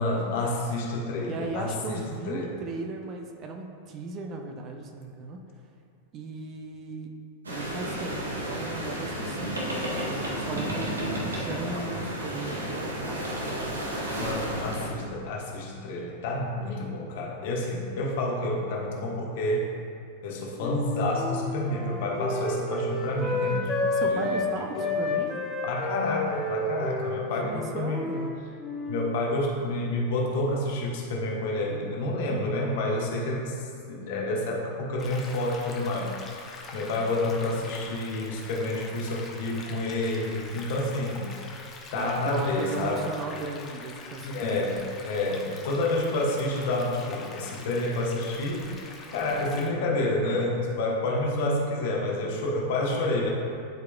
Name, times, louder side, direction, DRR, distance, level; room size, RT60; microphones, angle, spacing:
voice 1, 0.0-2.5 9.5-9.6 14.2-19.7 20.2-23.8 24.0-24.9 25.6-28.1 28.9-36.1 36.7-41.3 41.9-43.0 44.2-48.7 49.1-53.3, left 2 dB, 50° left, -2 dB, 1.3 m, -29 dB
voice 2, 1.3-5.4 6.1-7.1 7.5-13.5 14.1-14.4 23.8-25.4 27.4-28.4 41.9-44.9, right 3 dB, 35° right, 3 dB, 0.7 m, -37 dB
sound 1, 7.4-14.9, right 1 dB, 75° right, 1.1 m, -32 dB
Wind instrument woodwind instrument, 20.6-24.5 24.8-28.3 28.6-29.2, left 2 dB, 5° left, 1.0 m, -30 dB
sound 2, 35.0-49.7, left 3 dB, 25° left, 1.0 m, -44 dB
11.5 x 4.8 x 2.3 m, 2.5 s
figure-of-eight pair, 90°, 0 cm